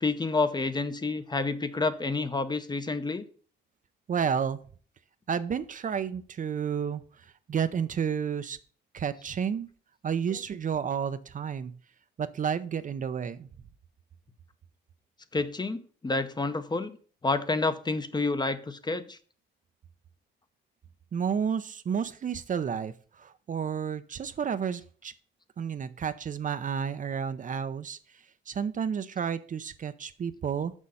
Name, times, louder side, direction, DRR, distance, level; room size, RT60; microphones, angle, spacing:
voice 1, 0.0-3.2 15.3-17.0 17.2-19.2, left 3 dB, 20° left, 11 dB, 0.8 m, -29 dB
voice 2, 4.1-4.6 5.3-8.6 8.9-9.7 10.0-11.7 12.2-13.5 21.1-25.1 25.6-30.7, right 7 dB, 40° right, 12 dB, 0.6 m, -31 dB
6.4 x 6.3 x 5.5 m, 0.43 s
cardioid pair, 90°, 20 cm